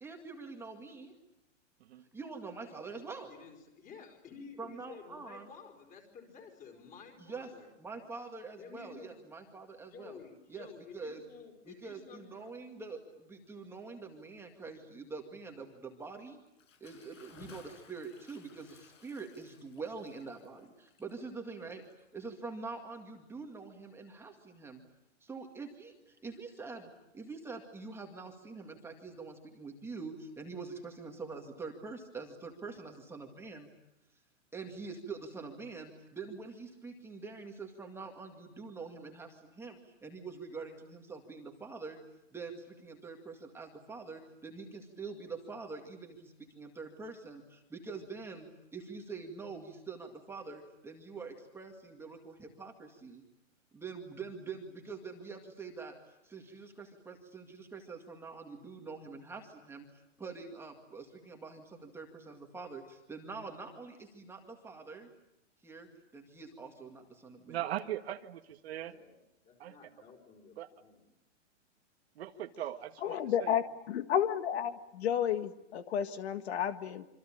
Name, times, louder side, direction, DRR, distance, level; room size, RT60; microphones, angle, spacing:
voice 1, 0.0-1.1 2.1-3.3 4.6-5.5 7.2-7.5 7.8-10.2 10.5-10.7 10.9-11.2 11.7-16.4 16.8-21.8 22.1-24.8 25.2-33.7 34.5-42.0 42.3-53.2 53.7-56.0 56.2-65.1 65.6-67.6, right 4 dB, 5° right, 2 dB, 2.1 m, -45 dB
voice 2, 3.3-7.7 8.6-9.1 9.8-12.5 68.8-69.1 69.5-71.1, left 5 dB, 20° left, 3 dB, 4.8 m, -52 dB
Bathtub (filling or washing) / Splash splatter, 16.5-22.4, left 6 dB, 85° left, 7.6 m, -59 dB
voice 3, 67.5-68.9 69.6-69.7 70.6-70.7 72.2-73.6, right 12 dB, 55° right, 7 dB, 1.7 m, -39 dB
voice 4, 73.0-77.1, left 9 dB, 60° left, 10 dB, 1.8 m, -32 dB
26.5 x 25.5 x 8.7 m, 0.88 s
hypercardioid pair, 160°, 37 cm